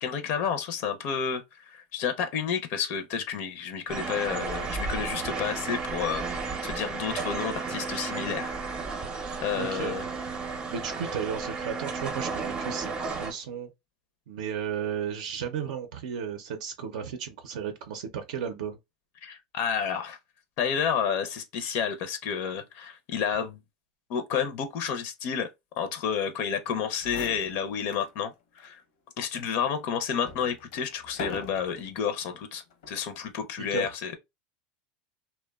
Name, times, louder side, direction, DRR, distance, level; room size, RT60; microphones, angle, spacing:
voice 1, 0.0-6.3 6.6-8.5 9.4-10.0 19.2-20.2 20.6-23.6 24.1-25.5 25.8-28.8 29.2-34.2, left 7 dB, 55° left, 0.4 m, -30 dB
sound 1, 3.9-13.3, right 4 dB, 25° right, 0.6 m, -33 dB
voice 2, 9.2-10.1 10.7-13.7 14.3-18.8 33.7-33.9, right 7 dB, 80° right, 0.5 m, -34 dB
sound 2, 26.7-26.8 27.0-28.1 28.6-28.7 29.3-31.9 32.7-33.1, left 3 dB, 85° left, 0.7 m, -42 dB
2.8 x 2.1 x 2.2 m
supercardioid pair, 125°, 4 cm